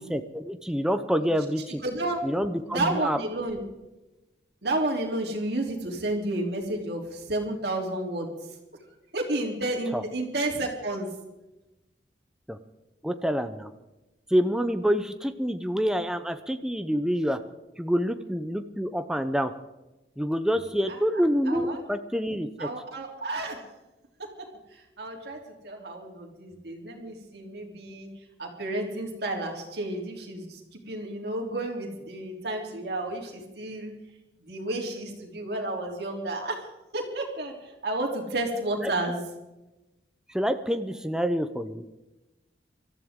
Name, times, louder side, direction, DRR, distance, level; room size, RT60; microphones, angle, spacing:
voice 1, 0.0-1.8 2.2-3.2 9.9-10.0 12.5-12.6 13.0-13.7 14.3-17.4 17.8-19.5 20.2-22.7 38.8-38.9 40.3-41.8, equal, 5° right, 8 dB, 0.7 m, -27 dB
voice 2, 1.8-2.2 2.7-3.6 4.6-8.4 9.1-11.1 20.9-21.0 21.5-21.8 22.6-23.6 24.4-24.5 25.0-25.4 25.6-28.1 28.4-30.6 30.9-33.9 34.4-36.6 36.9-37.5 37.8-39.2, right 2 dB, 60° right, 0 dB, 3.4 m, -31 dB
24.5 x 14.0 x 3.7 m, 1.0 s
head